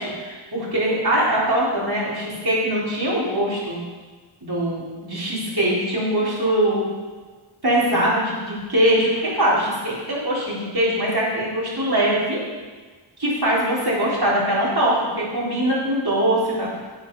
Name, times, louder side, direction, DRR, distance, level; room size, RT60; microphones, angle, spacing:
voice 1, 0.0-3.8 4.4-6.8 7.6-12.4 13.2-16.8, right 1 dB, 50° right, -7 dB, 4.0 m, -22 dB
9.4 x 8.8 x 5.4 m, 1.4 s
wide cardioid pair, 40°, 48 cm